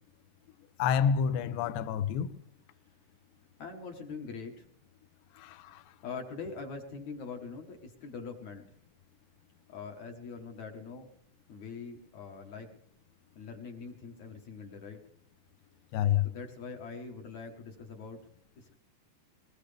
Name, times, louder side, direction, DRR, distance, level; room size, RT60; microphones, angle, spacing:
voice 1, 0.8-2.3 5.4-5.8 15.9-16.3, left 8 dB, 80° left, 2.9 m, -28 dB
voice 2, 3.6-4.7 6.0-8.8 9.7-11.1 11.5-12.7 13.4-15.0 16.2-18.2 18.6-18.8, left 5 dB, 65° left, 1.9 m, -43 dB
22.0 x 19.0 x 3.4 m
omnidirectional pair, 4.9 m